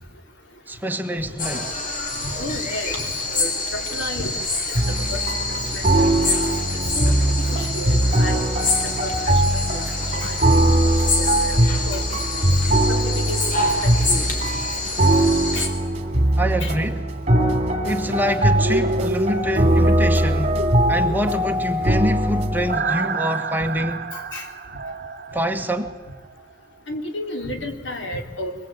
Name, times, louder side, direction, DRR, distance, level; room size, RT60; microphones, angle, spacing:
voice 1, 0.7-1.8 16.4-17.0 17.8-20.6 20.9-24.1 25.3-25.9, equal, 10° right, 1.5 m, -25 dB
sound 1, 1.4-15.7, left 3 dB, 50° left, 4.0 m, -27 dB
voice 2, 2.2-4.3 5.1-5.2 5.7-6.1 7.0-8.5 8.8-9.4 9.7-10.8 11.2-11.6 11.9-12.0 12.9-13.5 13.8-14.2 15.6-15.7 16.6-16.8 24.1-24.5 26.9-28.6, left 1 dB, 85° left, 3.6 m, -32 dB
sound 2, 4.8-22.8, right 1 dB, 35° right, 2.8 m, -21 dB
sound 3, 18.6-26.4 26.8-26.9, right 2 dB, 50° right, 1.4 m, -30 dB
25.0 x 22.0 x 8.8 m
head